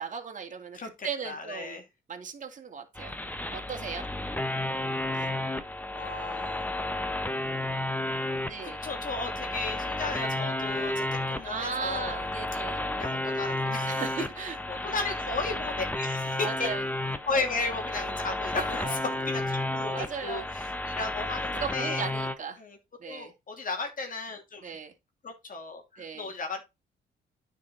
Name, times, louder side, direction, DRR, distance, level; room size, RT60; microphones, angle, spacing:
voice 1, 0.0-1.8 2.1-3.2 3.5-4.1 5.2-5.3 8.5-8.8 11.4-12.8 13.9-14.6 16.4-16.8 17.3-17.5 18.0-19.0 19.9-20.5 21.5-22.6 23.0-23.3 24.6-24.9 26.0-26.3, right 6 dB, 40° right, 2.4 m, -37 dB
voice 2, 0.7-1.8 5.9-7.0 8.6-12.2 12.8-14.3 14.7-16.7 17.3-19.0 19.3-19.9 20.2-22.0 22.6-22.8 23.1-24.7 25.2-26.6, left 3 dB, 45° left, 3.0 m, -35 dB
sound 1, 3.0-22.4, left 1 dB, 10° left, 1.1 m, -32 dB
9.6 x 5.5 x 4.2 m
cardioid pair, 90°, 20 cm